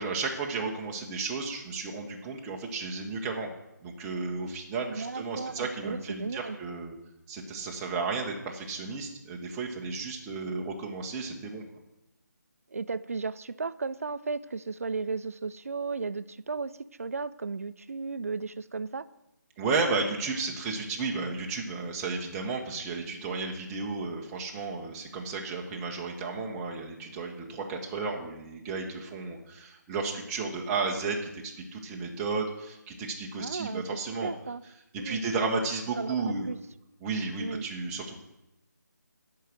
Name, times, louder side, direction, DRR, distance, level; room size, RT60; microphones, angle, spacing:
voice 1, 0.0-3.5 3.8-6.9 7.3-11.6 19.6-31.4 31.7-34.3 35.0-36.5 37.0-38.2, right 4 dB, 10° right, 0 dB, 0.7 m, -33 dB
voice 2, 4.9-6.6 12.7-16.7 17.0-19.1 33.4-33.8 34.2-34.6 35.0-35.3 36.0-36.6 37.4-37.7, right 4 dB, 50° right, 15 dB, 0.4 m, -35 dB
11.0 x 4.8 x 7.7 m, 0.91 s
figure-of-eight pair, 155°, 10 cm